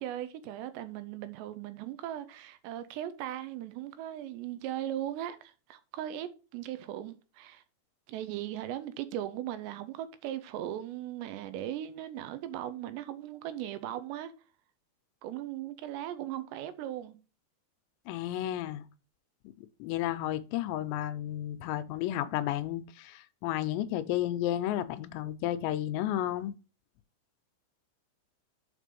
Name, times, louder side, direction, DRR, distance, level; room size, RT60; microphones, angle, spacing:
voice 1, 0.0-7.6 8.1-14.3 15.2-17.2, right 12 dB, 80° right, 2.8 m, -38 dB
voice 2, 18.1-18.8 19.8-26.5, left 12 dB, 85° left, 2.9 m, -32 dB
6.6 x 5.1 x 5.2 m
omnidirectional pair, 5.1 m